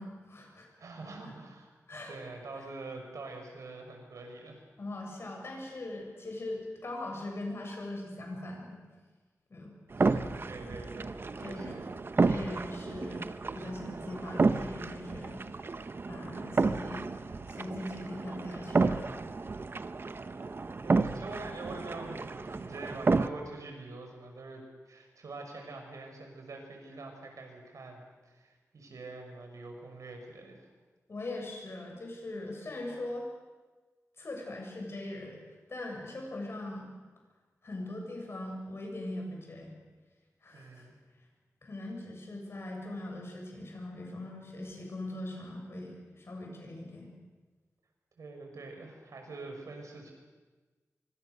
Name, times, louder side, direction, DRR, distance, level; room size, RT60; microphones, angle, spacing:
voice 1, 0.0-0.7 1.2-1.3 1.9-2.1 4.8-8.8 9.5-9.7 10.1-10.4 11.4-12.0 12.2-13.3 13.5-15.4 16.1-19.2 31.1-33.3 34.2-35.4 35.7-36.9 37.6-39.7 40.4-40.9 41.6-47.1, left 1 dB, 50° left, 1 dB, 7.3 m, -41 dB
voice 2, 0.8-4.6 9.9-11.1 11.4-11.8 20.8-30.7 40.5-41.0 48.2-50.1, right 3 dB, 90° right, 3 dB, 5.6 m, -45 dB
sound 1, 9.9-23.3, right 3 dB, 45° right, 0.9 m, -31 dB
25.0 x 24.5 x 6.8 m, 1.3 s
wide cardioid pair, 125°, 5 cm